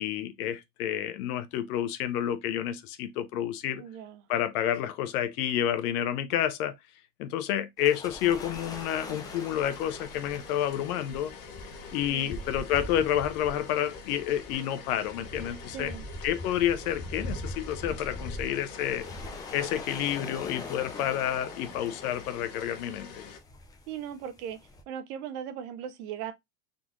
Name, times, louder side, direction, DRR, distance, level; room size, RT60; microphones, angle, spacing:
voice 1, 0.0-3.8 4.3-6.8 7.2-11.3 11.9-15.9 16.2-19.1 19.5-23.2, left 11 dB, 65° left, 0.9 m, -29 dB
voice 2, 3.7-4.2 12.1-12.3 15.7-16.0 23.9-24.6 24.9-26.3, right 9 dB, 65° right, 1.0 m, -38 dB
sound 1, 7.8-24.8, left 1 dB, 10° left, 0.3 m, -42 dB
sound 2, 8.4-23.4, left 5 dB, 45° left, 1.4 m, -45 dB
4.0 x 3.0 x 3.7 m
supercardioid pair, 140°, 48 cm